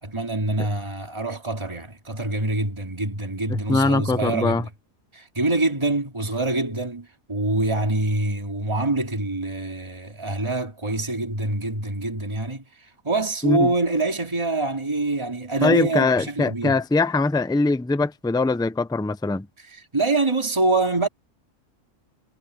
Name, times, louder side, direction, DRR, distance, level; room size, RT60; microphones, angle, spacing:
voice 1, 0.0-4.7 5.1-12.6 13.0-16.8 19.7-21.1, right 2 dB, 20° right, 2.8 m, -25 dB
voice 2, 3.5-4.6 13.4-13.7 15.6-19.5, left 3 dB, 5° left, 0.5 m, -22 dB
omnidirectional pair, 1.4 m